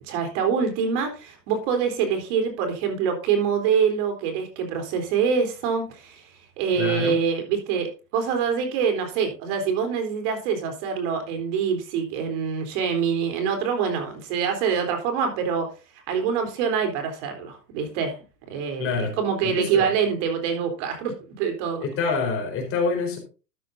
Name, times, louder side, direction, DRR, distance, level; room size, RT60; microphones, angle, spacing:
voice 1, 0.0-6.2 6.6-15.7 16.1-18.2 18.5-18.9 19.2-21.8, right 6 dB, 45° right, 3.8 m, -25 dB
voice 2, 6.7-7.2 18.8-19.2 19.4-20.0 21.8-23.2, left 4 dB, 25° left, 4.4 m, -26 dB
13.0 x 9.8 x 2.7 m
hypercardioid pair, 135°, 48 cm